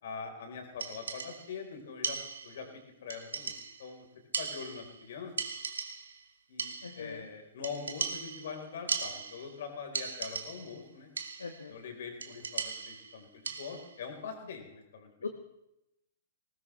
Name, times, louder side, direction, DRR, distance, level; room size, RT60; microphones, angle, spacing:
voice 1, 0.0-2.2 2.4-3.5 3.8-4.1 4.4-5.3 6.5-11.1 11.7-15.3, left 5 dB, 55° left, 4 dB, 4.0 m, -43 dB
sound 1, 0.8-1.6 2.0-2.7 3.1-3.9 4.3-5.1 5.4-6.2 6.6-7.1 7.6-9.6 9.9-10.8 11.2-11.7 12.2-14.0, right 5 dB, 70° right, 1.6 m, -38 dB
voice 2, 6.8-7.2 11.4-11.7 15.2-15.3, left 5 dB, 75° left, 6 dB, 1.3 m, -40 dB
20.5 x 19.5 x 3.2 m, 0.86 s
figure-of-eight pair, 110°, 0 cm